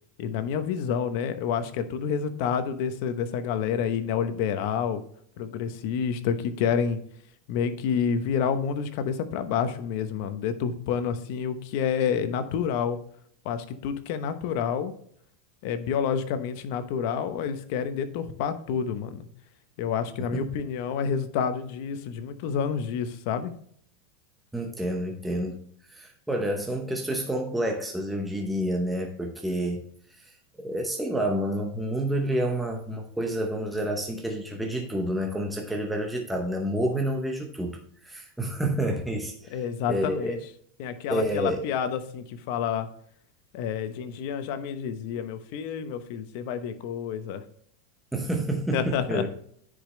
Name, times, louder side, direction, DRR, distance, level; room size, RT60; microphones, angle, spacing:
voice 1, 0.2-5.0 5.4-7.0 7.5-13.0 13.4-14.9 15.6-19.2 19.8-23.5 39.5-40.4 40.8-42.9 43.5-47.4 48.7-49.3, left 7 dB, 55° left, 10 dB, 0.9 m, -29 dB
voice 2, 24.5-25.6 25.9-29.8 30.2-30.3 30.6-37.8 38.0-40.3 41.1-41.6 48.1-49.3, right 1 dB, 5° right, 1 dB, 0.8 m, -29 dB
9.8 x 5.1 x 3.2 m, 0.64 s
supercardioid pair, 165°, 0 cm